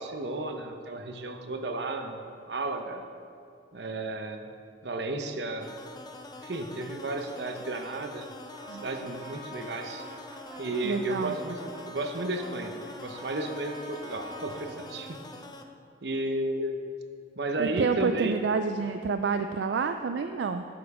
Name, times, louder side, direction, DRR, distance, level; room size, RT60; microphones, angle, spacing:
voice 1, 0.0-3.1 3.7-4.4 4.8-5.7 6.4-8.3 8.7-10.0 10.6-12.7 13.0-15.2 16.0-16.8 17.4-18.4, right 2 dB, 70° right, 5 dB, 0.9 m, -33 dB
sound 1, 5.6-15.6, left 2 dB, 25° left, 0.6 m, -45 dB
Brass instrument, 8.5-14.7, equal, 25° right, 1.5 m, -45 dB
voice 2, 10.8-11.3 17.6-20.7, right 5 dB, 85° right, 8 dB, 0.4 m, -28 dB
12.0 x 7.1 x 4.9 m, 2.4 s
head